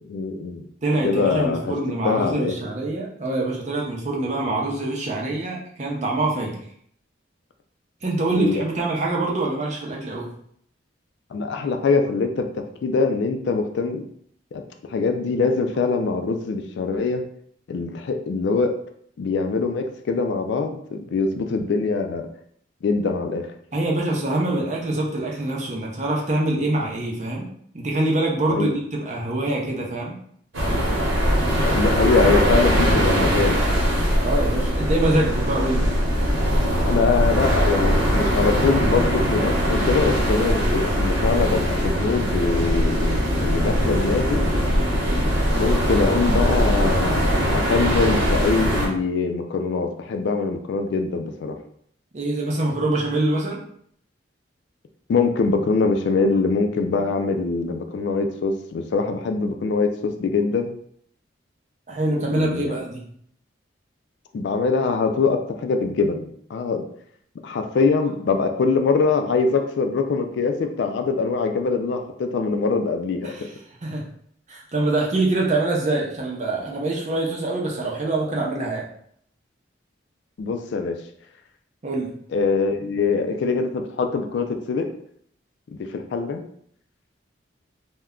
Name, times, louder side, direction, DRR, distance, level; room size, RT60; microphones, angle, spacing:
voice 1, 0.1-0.7 1.0-1.7 2.0-2.5 8.4-8.6 11.3-14.0 14.5-14.6 14.9-17.3 17.7-18.8 19.2-22.3 22.8-23.5 28.5-28.7 31.6-33.6 36.8-44.4 45.6-51.6 55.1-60.7 62.3-62.8 64.3-66.9 67.4-73.5 80.4-80.9 82.3-84.9 85.7-86.4, left 4 dB, 65° left, 6 dB, 0.3 m, -23 dB
voice 2, 0.8-6.5 8.0-10.3 23.7-27.5 27.7-30.2 32.3-32.4 34.2-35.9 52.1-53.6 61.9-63.0 73.2-73.5 73.8-74.0 74.5-78.9 81.8-82.1, right 2 dB, 40° right, -2 dB, 0.6 m, -24 dB
sound 1, 30.5-48.9, equal, 80° right, 1.0 m, -21 dB
2.2 x 2.1 x 3.6 m, 0.65 s
head